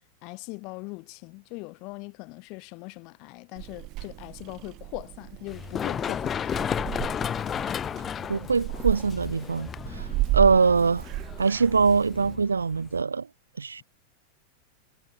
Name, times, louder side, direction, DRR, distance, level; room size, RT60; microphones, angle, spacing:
voice 1, 0.2-6.9, left 29 dB, 45° left, 6.0 m, -40 dB
Purr / Meow, 3.6-12.4, right 20 dB, 40° right, 0.5 m, -34 dB
Run, 5.5-13.0, left 8 dB, 25° left, 2.6 m, -33 dB
voice 2, 8.3-10.1 10.3-11.0 11.4-13.3 13.6-13.8, right 5 dB, 75° right, 0.7 m, -23 dB
figure-of-eight pair, 90°, 0 cm